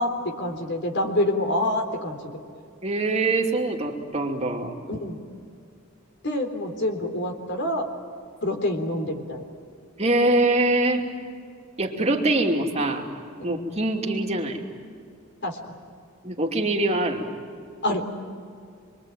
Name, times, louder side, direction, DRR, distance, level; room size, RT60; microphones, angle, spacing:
voice 1, 0.0-2.2 4.9-5.2 6.2-7.9 8.4-9.4 13.4-13.6 15.4-15.6 17.8-18.1, left 1 dB, 55° left, 3 dB, 3.7 m, -26 dB
voice 2, 2.8-4.8 10.0-11.1 11.8-13.1 13.4-14.6 16.2-17.4, right 2 dB, 30° right, 1 dB, 2.7 m, -23 dB
27.5 x 23.0 x 9.2 m, 2.4 s
head